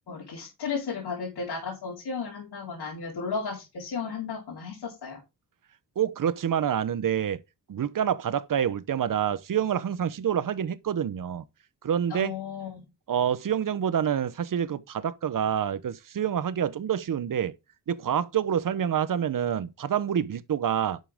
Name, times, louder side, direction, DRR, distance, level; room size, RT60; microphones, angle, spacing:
voice 1, 0.0-5.2 12.1-12.8, left 5 dB, 80° left, 4.5 m, -34 dB
voice 2, 6.0-7.4 7.7-11.4 11.8-12.3 13.1-17.5 17.9-21.0, right 9 dB, 55° right, 0.9 m, -27 dB
11.0 x 7.3 x 3.6 m
wide cardioid pair, 120°, 39 cm